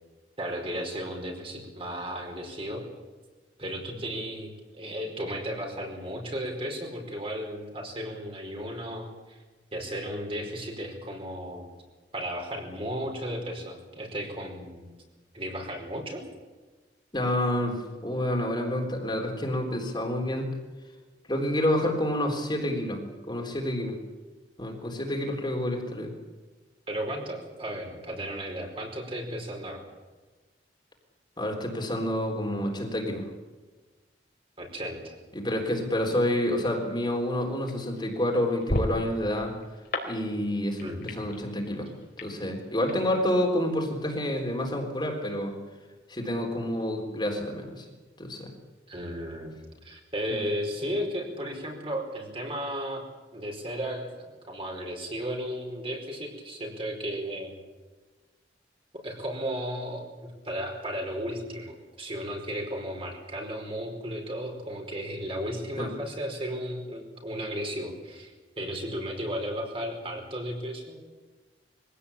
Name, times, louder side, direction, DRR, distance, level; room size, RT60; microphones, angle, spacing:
voice 1, 0.4-2.8 3.6-4.5 4.8-9.4 9.7-11.7 12.1-14.9 15.3-16.2 26.9-29.8 34.6-35.2 40.8-41.1 48.9-53.0 53.3-57.5 59.0-71.2, equal, 30° right, 1 dB, 5.0 m, -34 dB
voice 2, 17.1-20.5 21.3-24.0 24.6-26.1 31.4-33.3 35.3-39.5 40.1-41.9 42.2-45.6 46.1-47.9 48.2-48.5 50.3-50.4 65.8-65.9, left 1 dB, 25° left, 1 dB, 3.8 m, -28 dB
sound 1, 36.4-42.9, left 1 dB, 60° left, 3.9 m, -37 dB
23.5 x 17.0 x 8.6 m, 1.3 s
head